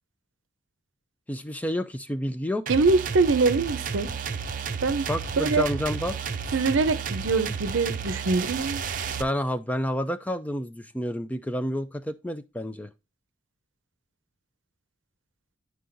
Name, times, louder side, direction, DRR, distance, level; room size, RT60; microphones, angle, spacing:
voice 1, 1.3-2.6 5.1-6.2 9.2-12.9, equal, 10° left, 0.4 m, -29 dB
sound 1, 2.7-9.2, right 6 dB, 45° right, 0.6 m, -32 dB
voice 2, 2.7-4.1 4.8-5.1 5.4-5.7 6.5-8.8, right 3 dB, 85° right, 0.6 m, -23 dB
11.5 x 4.7 x 2.5 m
head